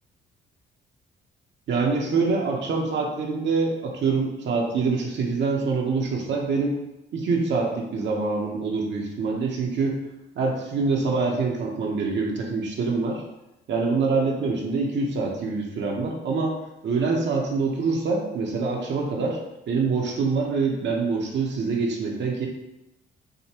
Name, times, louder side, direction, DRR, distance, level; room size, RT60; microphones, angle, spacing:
voice 1, 1.7-6.8 7.1-10.0 10.3-13.2 13.7-16.5 16.8-19.4 19.7-22.5, right 4 dB, 65° right, 0 dB, 0.9 m, -25 dB
5.0 x 2.3 x 2.9 m, 0.91 s
cardioid pair, 90°, 20 cm